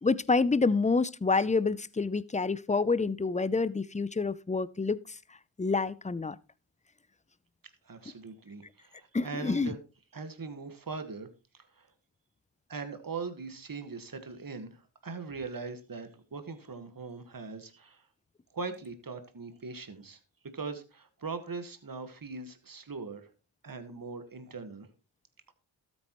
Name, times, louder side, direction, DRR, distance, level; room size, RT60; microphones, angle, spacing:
voice 1, 0.0-5.2 5.6-6.4 9.1-9.7, left 4 dB, 15° left, 0.5 m, -28 dB
voice 2, 7.9-9.8 10.1-11.3 11.5-11.9 12.7-18.1 18.5-20.2 20.5-23.3 23.6-24.9 25.5-25.6, right 4 dB, 45° right, 1.7 m, -41 dB
13.0 x 8.8 x 3.1 m
cardioid pair, 50°, 47 cm